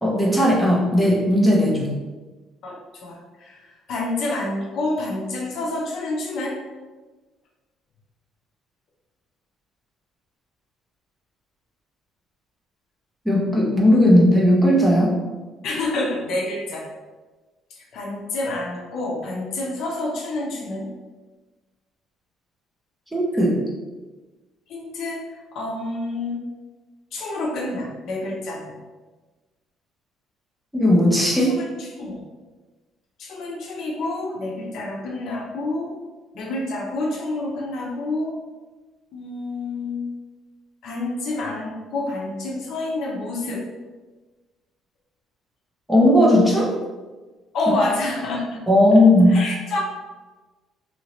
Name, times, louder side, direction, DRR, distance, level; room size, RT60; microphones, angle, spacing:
voice 1, 0.0-1.9 13.3-15.2 23.1-23.6 30.7-31.6 45.9-46.7 48.7-49.4, left 1 dB, 5° right, -4 dB, 0.6 m, -16 dB
voice 2, 2.6-3.6 3.9-6.6 15.6-16.9 17.9-20.9 24.7-25.3 25.5-26.4 27.1-28.7 31.5-32.2 33.2-36.0 36.3-38.4 39.1-40.1 40.8-43.7 47.5-48.6 49.3-49.8, left 2 dB, 55° left, -1 dB, 0.6 m, -28 dB
2.8 x 2.7 x 2.9 m, 1.3 s
cardioid pair, 160°, 0 cm